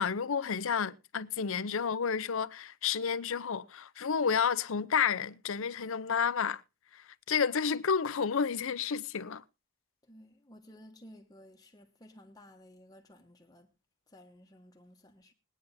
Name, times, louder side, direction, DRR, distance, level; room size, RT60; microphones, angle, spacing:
voice 1, 0.0-6.6 6.9-9.4, left 6 dB, 65° left, 0.6 m, -31 dB
voice 2, 10.0-13.7 14.1-15.3, equal, 20° left, 1.1 m, -55 dB
21.5 x 9.3 x 2.7 m
head